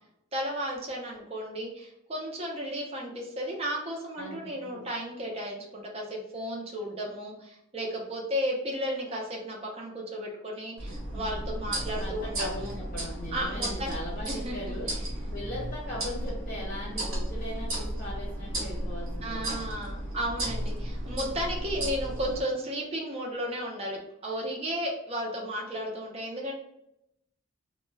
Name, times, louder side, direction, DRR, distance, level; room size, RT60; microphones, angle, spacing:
voice 1, 0.3-12.7 13.3-14.0 14.3-14.7 19.2-26.5, equal, 30° right, -1 dB, 0.5 m, -34 dB
sound 1, 10.8-22.4, right 1 dB, 85° right, 1.0 m, -34 dB
voice 2, 11.9-14.9 15.3-19.7, left 1 dB, 40° left, -5 dB, 0.7 m, -39 dB
2.2 x 2.1 x 3.1 m, 0.81 s
head